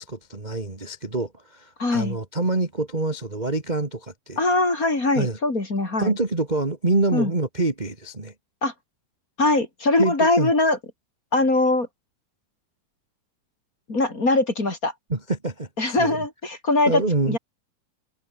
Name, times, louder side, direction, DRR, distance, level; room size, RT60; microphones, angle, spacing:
voice 1, 0.0-4.4 5.2-5.4 6.0-8.3 10.0-10.5 15.1-16.2 16.9-17.4, right 2 dB, 15° right, 1.9 m, -26 dB
voice 2, 1.8-2.2 4.4-6.1 7.1-7.3 8.6-8.7 9.4-10.8 11.3-11.9 13.9-14.9 15.8-17.4, left 2 dB, 25° left, 3.9 m, -22 dB
omnidirectional pair, 3.8 m